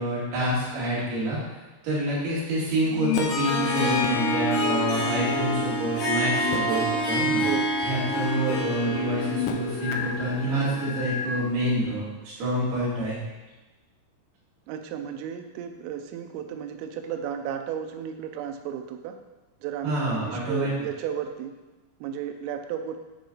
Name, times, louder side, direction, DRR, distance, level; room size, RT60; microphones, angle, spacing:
voice 1, 0.0-1.4 1.8-7.4 7.8-13.2 19.8-20.7, right 1 dB, 55° right, -8 dB, 4.0 m, -27 dB
sound 1, 2.8-4.1 6.2-7.1 7.5-7.6 9.0-11.3, left 8 dB, 85° left, 2.8 m, -32 dB
Harp, 3.1-11.6, left 1 dB, 60° left, 3.7 m, -27 dB
voice 2, 6.6-7.0 7.4-7.7 8.1-8.5 14.7-19.2 19.6-21.6 22.0-23.0, right 8 dB, 85° right, 6 dB, 3.2 m, -34 dB
9.8 x 4.8 x 3.9 m, 1.1 s
omnidirectional pair, 5.9 m